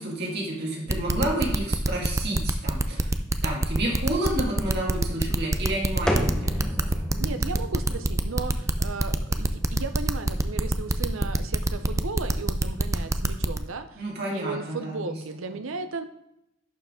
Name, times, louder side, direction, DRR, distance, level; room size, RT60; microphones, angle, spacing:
voice 1, 0.0-3.1 3.4-6.9 14.0-15.1, right 1 dB, 55° right, -3 dB, 2.0 m, -30 dB
sound 1, 0.9-13.6, right 2 dB, 15° right, 0.4 m, -24 dB
sound 2, 6.1-13.8, equal, 5° left, 0.8 m, -35 dB
voice 2, 7.2-16.1, right 4 dB, 70° right, 9 dB, 0.7 m, -35 dB
11.0 x 4.8 x 3.7 m, 0.87 s
head